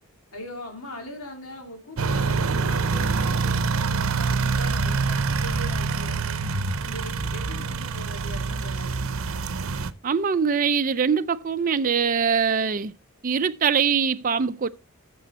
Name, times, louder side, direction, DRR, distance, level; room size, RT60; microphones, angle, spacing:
voice 1, 0.3-6.4 6.8-9.4, left 1 dB, 80° left, 2.3 m, -41 dB
sound 1, 2.0-9.9, right 4 dB, 70° right, 0.7 m, -25 dB
voice 2, 10.0-12.9 13.2-14.7, right 6 dB, 40° right, 0.4 m, -23 dB
13.5 x 7.0 x 4.0 m
head